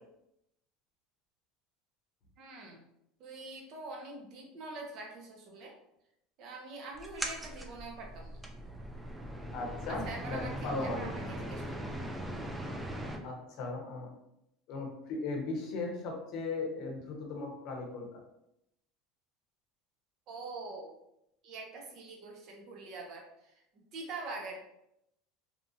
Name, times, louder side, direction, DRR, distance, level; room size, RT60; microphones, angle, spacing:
voice 1, 2.4-2.8 3.2-5.7 6.4-8.4 9.9-11.6 20.3-20.9 21.4-23.2 23.9-24.6, right 3 dB, 50° right, 0 dB, 0.7 m, -44 dB
sound 1, 7.0-13.2, equal, 5° right, 0.4 m, -40 dB
voice 2, 9.5-11.1 13.2-14.1 14.7-18.2, left 3 dB, 55° left, 1 dB, 0.7 m, -37 dB
2.8 x 2.4 x 2.6 m, 0.80 s
supercardioid pair, 140°, 0 cm